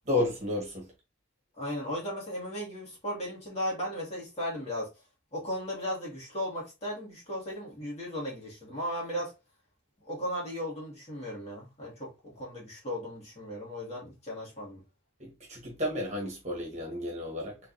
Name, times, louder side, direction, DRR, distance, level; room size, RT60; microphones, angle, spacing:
voice 1, 0.0-0.9 15.2-17.6, left 2 dB, 35° right, 1.5 m, -32 dB
voice 2, 1.6-4.9 5.3-9.3 10.0-14.8, equal, 35° left, 1.8 m, -36 dB
3.8 x 3.4 x 2.6 m
head